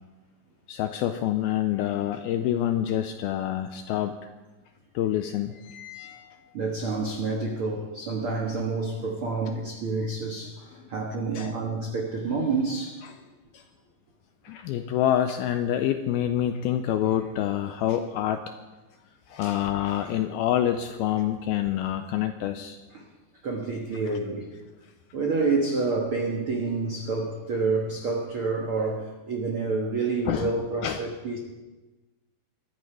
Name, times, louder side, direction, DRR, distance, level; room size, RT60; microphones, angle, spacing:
voice 1, 0.7-4.2 4.9-6.4 11.4-11.6 13.5-13.6 14.4-18.5 19.3-22.8 30.3-30.5 30.8-31.0, left 11 dB, 80° left, 8 dB, 2.2 m, -27 dB
voice 2, 6.5-13.1 19.3-19.5 22.9-23.1 23.4-24.5 25.1-31.4, right 3 dB, 70° right, 1 dB, 1.2 m, -28 dB
22.5 x 13.0 x 4.9 m, 1.2 s
omnidirectional pair, 4.9 m